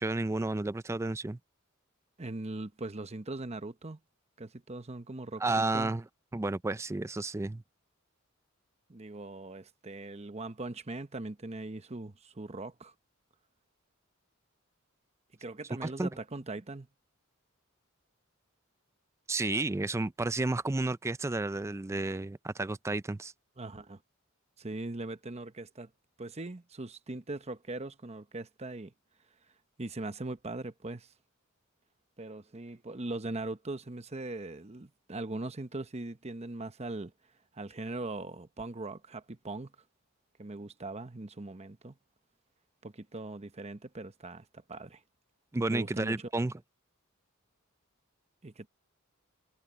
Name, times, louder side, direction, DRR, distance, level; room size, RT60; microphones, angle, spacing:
voice 1, 0.0-1.4 5.4-6.0 6.3-7.6 15.8-16.1 19.3-23.3 45.5-46.5, right 2 dB, 15° right, 0.4 m, -31 dB
voice 2, 2.2-4.0 4.4-5.9 8.9-12.9 15.4-16.9 23.6-24.0 24.6-25.9 26.2-28.9 29.8-31.1 32.2-37.1 37.5-39.7 40.4-41.9 42.8-45.0 45.7-46.3 48.4-48.7, right 2 dB, 30° right, 0.9 m, -40 dB
head